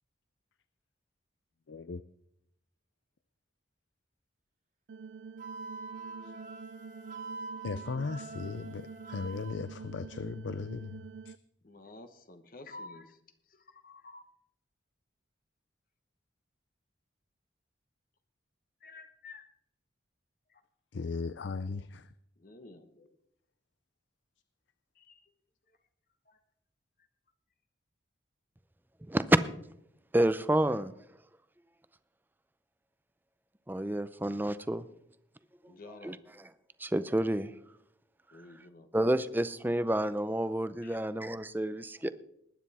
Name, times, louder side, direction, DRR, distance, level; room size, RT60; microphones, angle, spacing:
voice 1, 1.7-2.0 6.2-6.4 7.6-11.3 20.9-22.1, left 4 dB, 70° left, 14 dB, 0.5 m, -37 dB
sound 1, 4.9-11.4, right 5 dB, 70° right, 0.4 m, -47 dB
Wind instrument woodwind instrument, 5.4-9.6, right 3 dB, 45° right, 1.8 m, -45 dB
voice 2, 11.6-13.2 13.5-14.2 18.8-19.5 22.4-23.1 25.0-25.2 26.3-26.4 35.7-36.2 38.3-38.9 40.8-41.0, left 2 dB, 45° left, 8 dB, 1.0 m, -50 dB
voice 3, 30.1-30.9 33.7-34.8 35.8-36.5 36.8-37.6 38.9-42.1, right 1 dB, 10° right, 13 dB, 0.5 m, -30 dB
20.0 x 9.6 x 4.2 m, 0.75 s
head